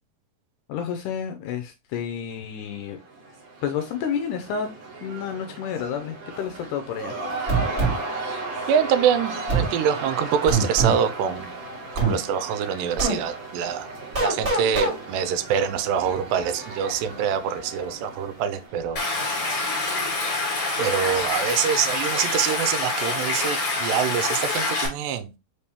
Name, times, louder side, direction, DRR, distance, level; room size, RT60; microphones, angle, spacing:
voice 1, 0.7-3.0 3.6-4.7 5.0-7.2, left 7 dB, 80° left, 1.9 m, -30 dB
Cheering / Crowd, 2.7-19.6, right 2 dB, 55° right, 2.8 m, -36 dB
sound 1, 7.5-8.0 9.5-9.7 10.5-11.0 12.0-12.2 13.0-13.2 14.1-14.9, right 4 dB, 25° right, 1.9 m, -22 dB
voice 2, 8.7-11.5 12.0-13.9 14.2-19.0 20.8-25.3, right 8 dB, 80° right, 2.2 m, -25 dB
Stream, 19.0-24.9, left 3 dB, 50° left, 2.7 m, -26 dB
5.1 x 3.4 x 2.8 m
omnidirectional pair, 4.0 m